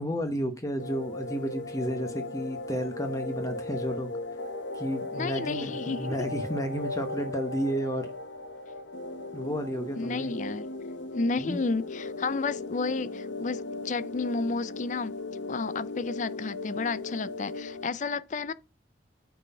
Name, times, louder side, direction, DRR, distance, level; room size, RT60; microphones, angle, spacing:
voice 1, 0.0-4.1 4.7-8.1 9.3-10.3 11.4-11.6, equal, 15° left, 0.9 m, -32 dB
sound 1, 0.8-17.9, left 2 dB, 80° left, 0.9 m, -37 dB
voice 2, 5.1-6.2 9.9-10.7 11.1-15.2 15.5-18.5, left 3 dB, 40° left, 0.4 m, -31 dB
9.4 x 4.1 x 5.5 m
head